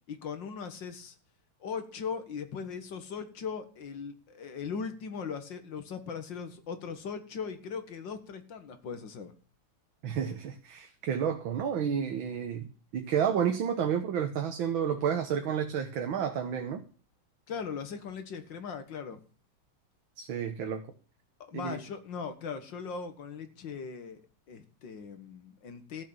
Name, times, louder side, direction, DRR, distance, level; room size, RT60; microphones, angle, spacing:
voice 1, 0.1-1.2 1.6-9.3 17.5-19.2 21.4-24.2 24.5-26.0, left 6 dB, 65° left, 2.1 m, -39 dB
voice 2, 10.0-16.8 20.2-20.8 21.5-21.8, right 8 dB, 75° right, 1.9 m, -31 dB
14.0 x 6.4 x 8.7 m
omnidirectional pair, 2.2 m